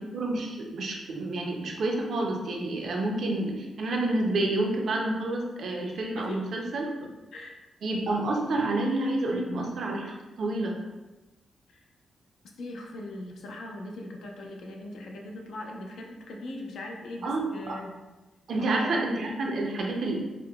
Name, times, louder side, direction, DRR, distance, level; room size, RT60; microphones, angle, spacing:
voice 1, 0.0-6.9 7.8-10.7 17.2-17.8 18.5-20.2, right 2 dB, 55° right, 0 dB, 0.4 m, -29 dB
voice 2, 6.1-6.5 7.0-7.6 9.3-9.7 11.7-11.8 12.6-18.0 18.6-19.3, left 1 dB, 70° left, 1 dB, 0.5 m, -40 dB
4.7 x 2.1 x 2.2 m, 1.1 s
wide cardioid pair, 175°, 0 cm